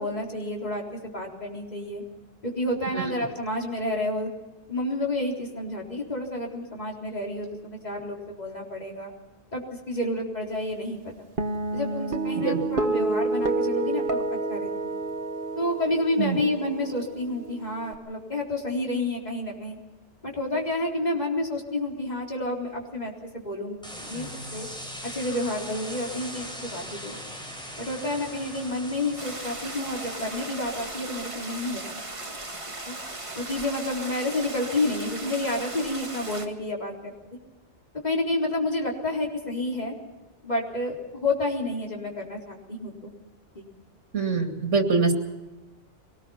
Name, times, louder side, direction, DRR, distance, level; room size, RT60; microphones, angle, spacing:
voice 1, 0.0-2.0 2.4-4.3 4.7-9.1 9.5-9.6 9.9-11.0 11.7-14.2 14.5-14.7 15.6-19.8 20.2-24.7 25.0-27.2 27.8-31.8 32.9-33.0 33.4-37.1 38.0-39.9 40.4-43.1 43.5-43.7, left 1 dB, 35° left, -1 dB, 4.1 m, -30 dB
Guitar, 11.4-17.9, right 2 dB, 50° right, 1.4 m, -29 dB
sound 1, 23.8-32.0, equal, 5° left, 6.3 m, -40 dB
sound 2, 29.2-36.5, right 2 dB, 25° right, 1.8 m, -37 dB
voice 2, 44.1-45.1, right 4 dB, 80° right, 4 dB, 2.9 m, -24 dB
24.0 x 19.5 x 5.8 m, 1.2 s
omnidirectional pair, 1.2 m